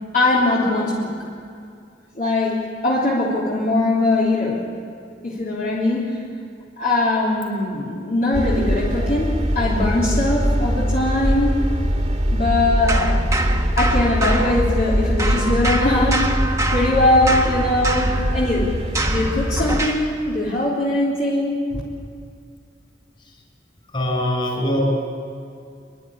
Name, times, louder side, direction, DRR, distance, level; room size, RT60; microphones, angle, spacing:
voice 1, 0.1-1.2 2.1-4.7 5.2-6.2 6.8-11.7 12.3-13.2 13.8-16.3 16.7-18.7 19.1-21.8, left 2 dB, 50° left, -7 dB, 3.5 m, -21 dB
sound 1, 8.3-19.8, equal, 35° right, 2.0 m, -22 dB
sound 2, 12.9-14.9 15.2-20.1, right 2 dB, 15° right, 1.5 m, -26 dB
voice 2, 23.9-24.8, left 1 dB, 30° left, 1 dB, 5.5 m, -22 dB
27.0 x 11.0 x 9.9 m, 2.3 s
head